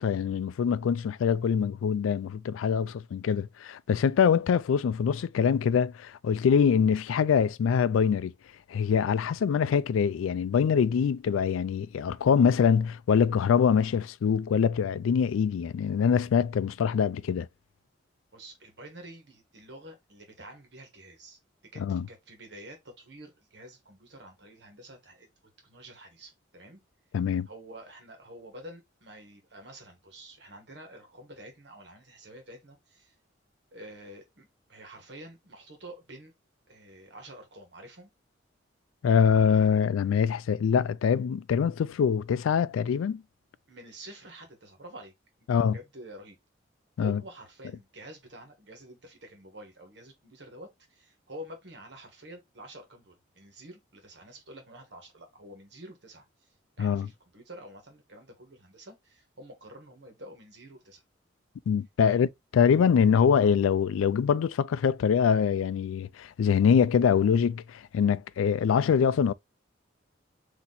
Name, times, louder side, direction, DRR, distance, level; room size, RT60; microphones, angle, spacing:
voice 1, 0.0-8.3 8.7-17.5 21.8-22.1 27.1-27.5 39.0-43.2 45.5-45.8 47.0-47.2 56.8-57.1 61.7-62.3 62.5-69.3, left 7 dB, 90° left, 0.3 m, -24 dB
voice 2, 18.3-21.4 21.7-25.3 25.6-26.8 27.5-33.1 33.7-36.3 36.7-38.1 43.7-45.1 45.5-46.4 47.0-56.5 56.8-61.0 62.0-62.2, right 1 dB, 60° right, 1.4 m, -48 dB
4.2 x 2.9 x 3.9 m
head